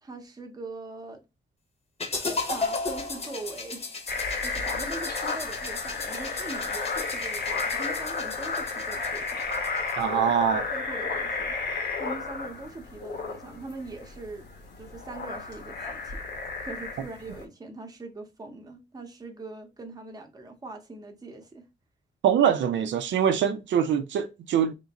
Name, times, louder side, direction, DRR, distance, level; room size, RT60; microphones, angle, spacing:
voice 1, 0.0-1.2 2.1-3.8 4.4-9.4 10.5-11.6 12.0-14.5 14.8-16.2 16.6-21.6, right 2 dB, 20° right, 0.8 m, -41 dB
sound 1, 2.0-10.0, left 3 dB, 35° left, 0.9 m, -35 dB
sound 2, 4.1-17.5, left 4 dB, 65° left, 1.0 m, -33 dB
voice 2, 10.0-10.7 22.2-24.7, right 8 dB, 85° right, 0.5 m, -24 dB
3.6 x 2.5 x 4.0 m
wide cardioid pair, 155°, 19 cm